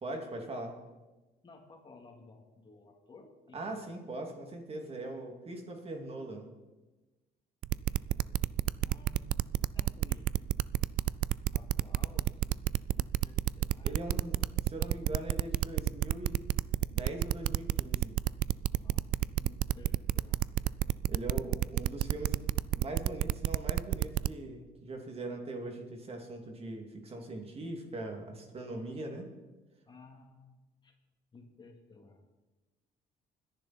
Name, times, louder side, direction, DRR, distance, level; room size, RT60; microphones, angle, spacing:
voice 1, 0.0-0.8 3.5-6.5 13.8-16.4 16.9-18.1 21.1-22.4 22.8-29.3, right 2 dB, 40° right, 3 dB, 2.8 m, -41 dB
voice 2, 1.4-3.8 7.9-9.4 9.7-10.3 11.5-14.0 18.8-20.4 28.8-29.0 29.9-31.0 31.3-32.2, left 3 dB, 30° left, 2 dB, 2.8 m, -56 dB
sound 1, 7.6-24.3, right 14 dB, 60° right, 0.4 m, -29 dB
24.0 x 10.5 x 4.4 m, 1.2 s
cardioid pair, 100°, 16 cm